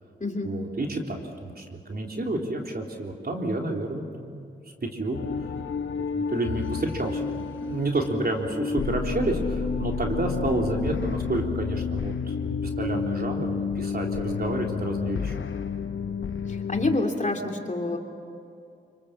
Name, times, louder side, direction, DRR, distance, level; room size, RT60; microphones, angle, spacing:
voice 1, 0.4-4.4 4.8-5.2 6.1-7.3 7.7-15.4, right 2 dB, 50° right, 1 dB, 3.7 m, -30 dB
sound 1, 5.1-17.0, left 5 dB, 70° left, 1.1 m, -30 dB
voice 2, 16.5-18.0, left 2 dB, 35° left, 2 dB, 3.1 m, -27 dB
25.0 x 24.5 x 7.6 m, 2.5 s
cardioid pair, 40°, 21 cm